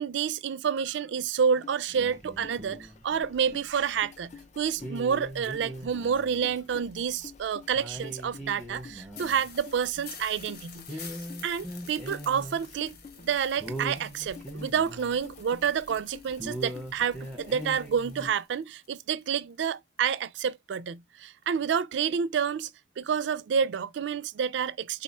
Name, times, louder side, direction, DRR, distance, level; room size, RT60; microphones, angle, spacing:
voice 1, 0.0-11.1 11.4-13.0 13.2-22.7 23.0-25.0, right 7 dB, 70° right, 0.3 m, -29 dB
sound 1, 1.6-18.4, left 5 dB, 40° left, 0.3 m, -50 dB
sound 2, 1.9-3.5 4.0-4.1 4.6-6.5 6.8-6.9 7.4-7.5 7.7-10.5 10.9-12.9 13.2-13.3 13.5-16.0 16.3-18.3, right 1 dB, ahead, 0.9 m, -40 dB
sound 3, 5.3-7.9 8.5-8.6 8.8-8.9 9.1-19.2 19.5-20.5 20.8-20.9 21.3-21.4, left 6 dB, 55° left, 0.8 m, -50 dB
3.9 x 2.2 x 4.1 m
head